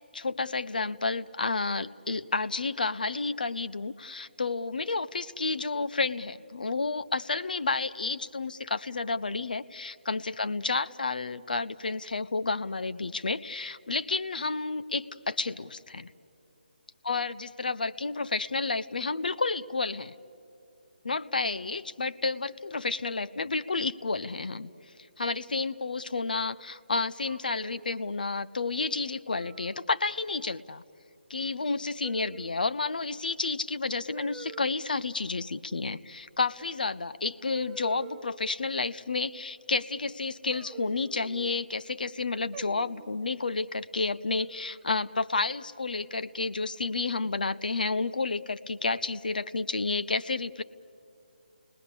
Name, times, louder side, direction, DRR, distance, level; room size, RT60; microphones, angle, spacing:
voice 1, 0.1-16.1 17.0-20.1 21.0-24.7 25.2-30.8 31.3-50.6, left 3 dB, 55° left, 12 dB, 0.6 m, -31 dB
sound 1, 27.3-28.1 29.4-29.8 30.3-30.6 32.0-32.7 34.1-34.7 36.7-36.8 37.5-38.5 40.5-41.6 42.5-43.2 44.4-45.0, right 6 dB, 10° right, 0.5 m, -48 dB
30.0 x 19.5 x 8.2 m, 2.7 s
figure-of-eight pair, 150°, 5 cm